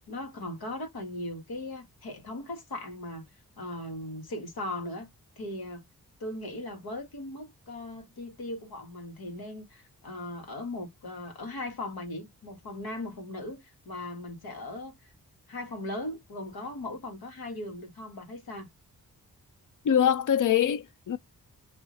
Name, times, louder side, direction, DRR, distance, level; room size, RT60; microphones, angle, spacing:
voice 1, 0.1-3.3 3.6-5.1 5.4-5.8 6.2-15.0 15.5-18.7, left 1 dB, 85° left, 1.8 m, -38 dB
voice 2, 19.8-21.2, left 9 dB, 60° left, 0.6 m, -24 dB
3.2 x 2.9 x 4.0 m
cardioid pair, 60°, 36 cm